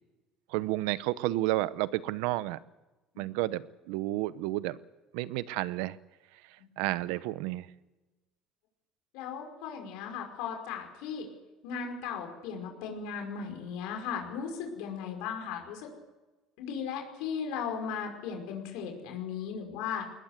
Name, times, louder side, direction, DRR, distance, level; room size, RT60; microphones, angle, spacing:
voice 1, 0.5-2.6 3.2-4.8 5.1-6.0 6.8-7.7, right 17 dB, 90° right, 17 dB, 0.8 m, -31 dB
voice 2, 9.1-11.3 11.6-15.9 16.6-20.1, left 7 dB, 80° left, 3 dB, 5.2 m, -37 dB
21.5 x 19.5 x 8.1 m, 1.1 s
cardioid pair, 145°, 0 cm